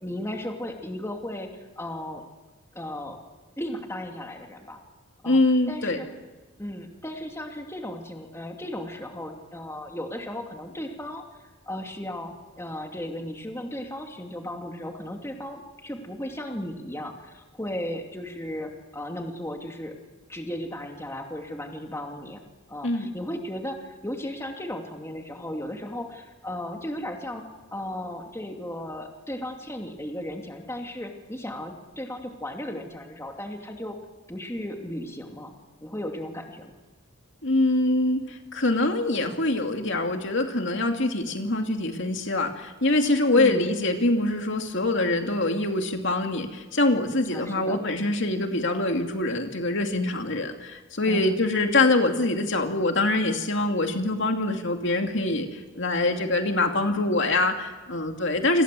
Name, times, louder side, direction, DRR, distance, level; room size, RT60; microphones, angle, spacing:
voice 1, 0.0-2.2 2.7-3.2 3.6-4.8 5.2-5.4 5.7-6.1 6.6-19.9 20.3-22.4 22.7-27.4 27.7-34.0 34.3-35.5 35.8-36.7 43.3-43.7 47.3-47.9 51.1-51.4, left 1 dB, 10° left, 2 dB, 2.6 m, -35 dB
voice 2, 5.2-6.0 22.8-23.1 37.4-58.6, left 2 dB, 60° left, 4 dB, 2.6 m, -24 dB
29.5 x 26.0 x 7.7 m, 1.2 s
head